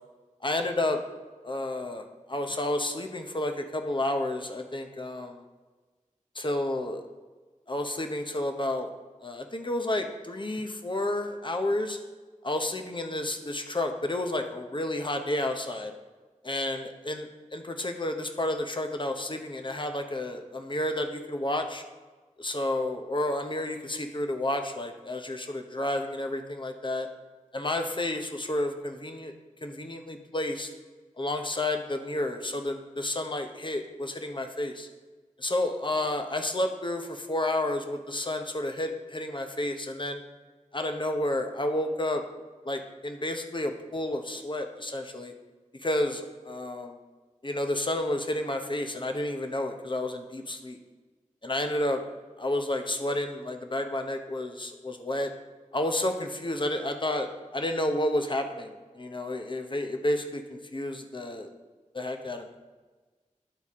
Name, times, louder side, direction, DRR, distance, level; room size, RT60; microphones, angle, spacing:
voice 1, 0.4-1.0 1.4-5.4 6.3-7.0 7.7-8.9 9.2-12.0 12.4-15.9 16.4-21.8 22.4-27.1 27.5-29.3 29.6-30.7 31.2-34.9 35.4-40.2 40.7-42.2 42.6-45.3 45.8-47.0 47.4-50.8 51.4-52.0 52.4-55.3 55.7-61.5 61.9-62.6, left 1 dB, 35° left, 5 dB, 0.8 m, -31 dB
12.0 x 4.1 x 3.6 m, 1.3 s
wide cardioid pair, 50°, 14 cm